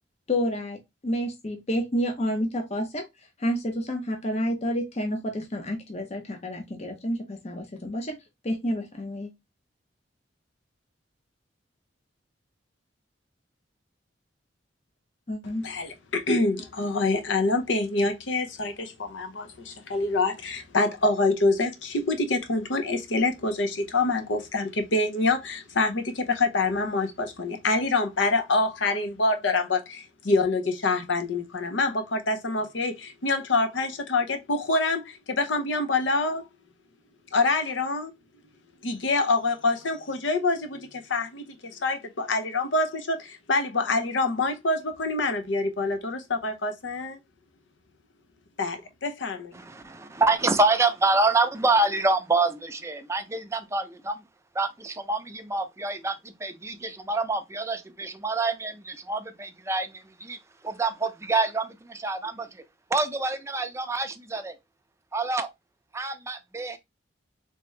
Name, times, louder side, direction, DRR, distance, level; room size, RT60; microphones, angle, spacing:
voice 1, 0.3-3.1 3.4-8.2 8.4-9.3 15.3-15.7, equal, 35° left, 0.6 m, -29 dB
voice 2, 15.6-36.4 37.3-38.1 38.8-47.2 48.6-49.5, left 3 dB, 80° left, 0.7 m, -26 dB
voice 3, 49.5-54.2 54.5-60.4 60.6-62.6 62.9-64.5 65.1-65.5 65.9-66.8, right 3 dB, 15° right, 0.5 m, -27 dB
3.4 x 2.9 x 3.1 m
head